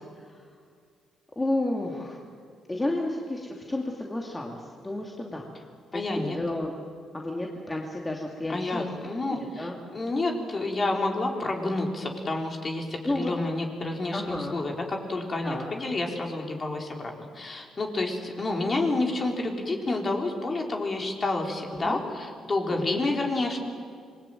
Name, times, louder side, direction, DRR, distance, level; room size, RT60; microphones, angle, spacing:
voice 1, 1.4-2.2 2.7-5.5 5.9-6.7 7.1-8.9 9.6-9.8 13.0-13.3 14.1-14.6 15.4-15.7 21.7-22.0 22.7-23.0, left 1 dB, 15° left, 0 dB, 2.7 m, -31 dB
voice 2, 5.9-6.4 8.5-23.6, left 2 dB, 35° left, 1 dB, 4.5 m, -29 dB
26.5 x 21.5 x 9.2 m, 2.1 s
cardioid pair, 90°, 0 cm